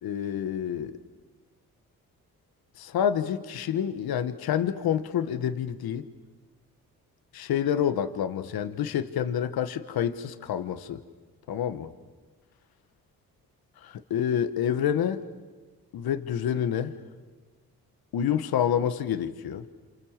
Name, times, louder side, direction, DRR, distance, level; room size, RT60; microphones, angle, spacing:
voice 1, 0.0-1.0 2.8-6.1 7.3-11.0 11.5-11.9 13.8-15.2 15.9-16.9 18.1-19.7, left 9 dB, 80° left, 10 dB, 1.3 m, -28 dB
28.0 x 27.5 x 7.4 m, 1.3 s
cardioid pair, 60°, 36 cm